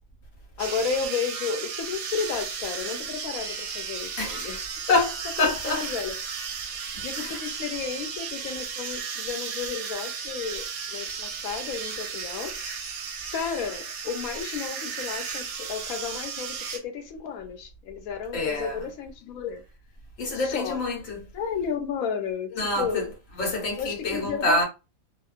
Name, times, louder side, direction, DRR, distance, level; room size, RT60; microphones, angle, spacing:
voice 1, 0.6-4.6 5.4-6.1 7.0-12.8 13.3-19.6 20.3-20.8 21.1-23.1 23.8-24.6, left 6 dB, 90° left, 1.0 m, -33 dB
sound 1, 0.6-16.8, right 6 dB, 65° right, 0.8 m, -34 dB
voice 2, 4.1-4.6 4.9-5.9 7.2-7.4 18.3-18.9 20.2-21.3 22.5-23.1 23.4-24.6, left 2 dB, 70° left, 1.3 m, -27 dB
2.9 x 2.1 x 2.3 m
omnidirectional pair, 1.4 m